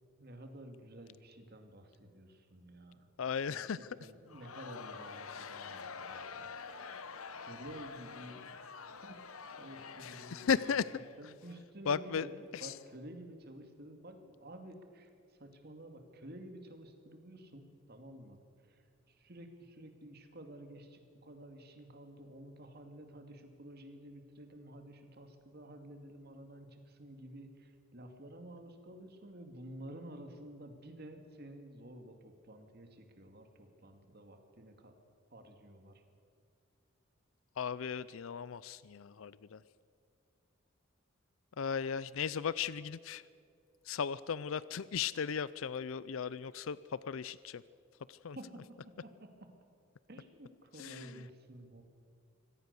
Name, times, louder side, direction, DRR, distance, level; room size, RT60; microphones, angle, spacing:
voice 1, 0.2-3.1 3.5-3.6 4.0-6.5 7.3-8.7 9.0-9.2 9.6-10.7 11.2-15.1 15.4-18.4 18.7-34.9 35.3-36.0 48.3-49.3 50.1-51.8, right 1 dB, 50° right, 6 dB, 2.4 m, -51 dB
voice 2, 3.2-4.1 5.3-6.0 6.5-6.6 10.0-11.3 11.8-12.8 37.6-39.6 41.6-43.3 43.8-47.6 48.1-48.7 50.7-51.3, left 6 dB, 75° left, 18 dB, 0.5 m, -37 dB
Crowd, 4.3-11.6, left 5 dB, 90° left, 1.2 m, -47 dB
25.0 x 17.5 x 6.9 m, 2.4 s
head